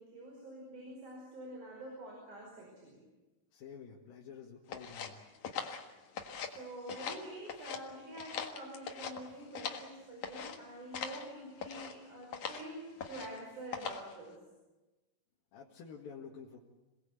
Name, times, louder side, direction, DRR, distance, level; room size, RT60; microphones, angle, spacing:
voice 1, 0.0-3.0 6.5-14.4, right 1 dB, 60° right, -1 dB, 6.6 m, -47 dB
voice 2, 3.5-5.2 15.5-16.6, left 6 dB, 90° left, -2 dB, 3.7 m, -49 dB
sound 1, 4.7-6.6 6.9-7.8 8.1-9.9 10.2-10.6 10.9-11.3 11.6-11.9 12.3-12.7 13.0-13.4 13.7-14.1, left 7 dB, 55° left, 2.7 m, -41 dB
27.0 x 19.5 x 8.3 m, 1.1 s
omnidirectional pair, 4.0 m